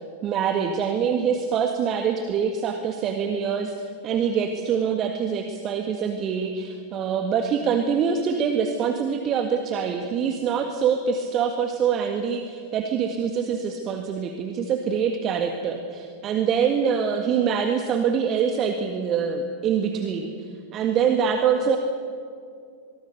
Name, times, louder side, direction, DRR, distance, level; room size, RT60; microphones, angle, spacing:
voice 1, 0.2-20.3 20.7-21.8, right 7 dB, 30° right, 5 dB, 1.8 m, -24 dB
25.0 x 23.0 x 6.8 m, 2.3 s
figure-of-eight pair, 90°, 0 cm